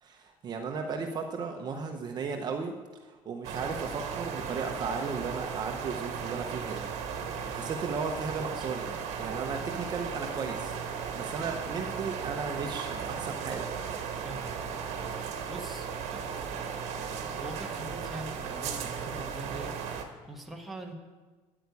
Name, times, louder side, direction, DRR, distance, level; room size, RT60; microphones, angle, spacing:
voice 1, 0.0-2.7 3.0-6.8 7.5-8.9 9.2-10.7 11.1-13.7, right 5 dB, 35° right, 3 dB, 0.8 m, -35 dB
sound 1, 3.4-20.0, right 6 dB, 60° right, 1.5 m, -36 dB
voice 2, 14.1-14.8 15.1-16.6 17.2-20.9, right 1 dB, ahead, -1 dB, 1.3 m, -44 dB
9.7 x 8.7 x 8.2 m, 1.3 s
cardioid pair, 170°, 13 cm